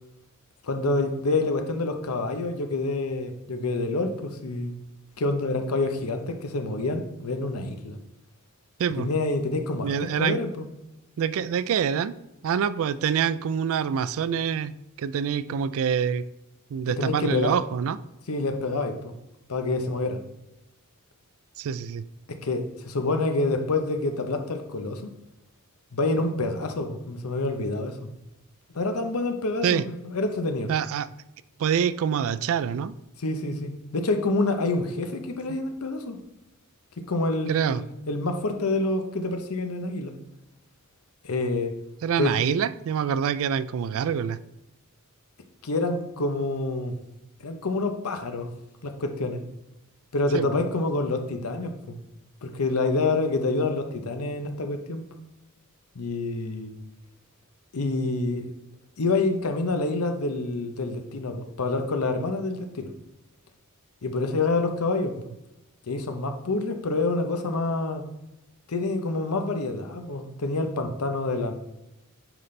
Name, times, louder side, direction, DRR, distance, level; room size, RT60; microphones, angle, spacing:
voice 1, 0.6-4.7 5.2-8.0 9.0-9.9 10.2-10.6 16.9-17.5 18.3-19.1 19.5-20.2 22.3-25.1 25.9-28.1 28.7-30.7 33.2-36.2 37.0-40.1 41.2-41.8 42.2-42.3 45.6-46.9 47.4-48.5 48.8-49.4 50.1-52.0 52.4-55.0 55.9-56.7 57.7-58.5 59.0-62.9 64.0-65.1 65.9-68.0 68.7-71.5, left 2 dB, 90° left, 6 dB, 0.8 m, -27 dB
voice 2, 9.8-10.4 11.2-12.1 12.4-14.7 15.0-16.2 16.7-18.0 21.6-22.0 29.6-29.8 30.7-31.1 31.6-32.9 35.5-35.6 37.5-37.8 42.0-44.4 50.3-50.6, right 7 dB, 65° right, 16 dB, 0.3 m, -26 dB
9.1 x 4.1 x 3.3 m, 0.90 s
head